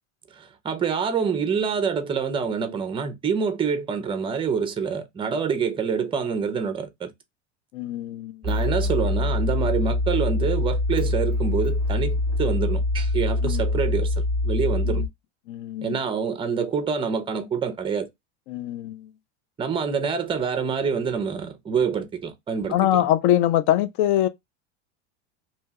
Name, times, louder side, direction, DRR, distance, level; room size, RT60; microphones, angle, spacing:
voice 1, 0.3-7.1 8.4-15.0 15.8-18.1 19.6-23.0, right 6 dB, 15° right, 0.4 m, -26 dB
voice 2, 7.7-8.4 13.4-13.6 14.9-15.0 15.5-16.0 18.5-19.1 22.7-24.3, left 12 dB, 60° left, 0.5 m, -23 dB
sound 1, 8.4-15.1, left 2 dB, 5° left, 0.8 m, -24 dB
2.8 x 2.2 x 2.9 m
supercardioid pair, 125°, 38 cm